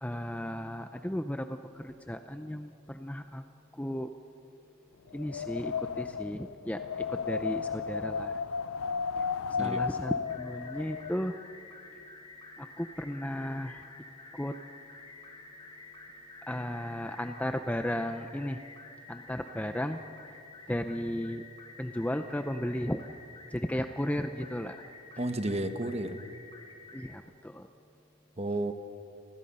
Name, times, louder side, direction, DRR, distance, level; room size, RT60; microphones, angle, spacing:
voice 1, 0.0-3.4 3.8-4.1 5.1-6.8 7.1-8.3 9.5-11.3 12.6-13.8 14.3-14.5 16.5-18.6 19.1-20.0 20.7-21.4 21.8-23.0 23.5-24.8 26.9-27.7, left 1 dB, 5° left, 7 dB, 0.5 m, -34 dB
Wind, 5.1-11.1, left 5 dB, 85° left, 0.5 m, -34 dB
sound 1, 10.2-27.2, left 3 dB, 25° left, 1.8 m, -50 dB
voice 2, 25.2-26.2 28.4-28.7, right 1 dB, 30° right, 8 dB, 1.2 m, -32 dB
29.5 x 20.5 x 5.5 m, 2.5 s
head